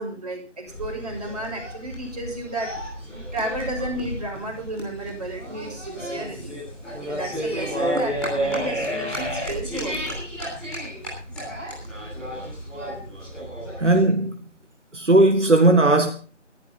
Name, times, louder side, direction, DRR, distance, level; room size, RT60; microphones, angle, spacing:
voice 1, 0.0-2.7 3.3-6.5 7.1-10.2, right 1 dB, 35° right, 7.2 m, -32 dB
sound 1, 0.7-14.0, equal, ahead, 3.8 m, -31 dB
voice 2, 13.8-14.3 14.9-16.1, right 2 dB, 75° right, 1.9 m, -17 dB
20.0 x 14.0 x 3.9 m
figure-of-eight pair, 170°, 37 cm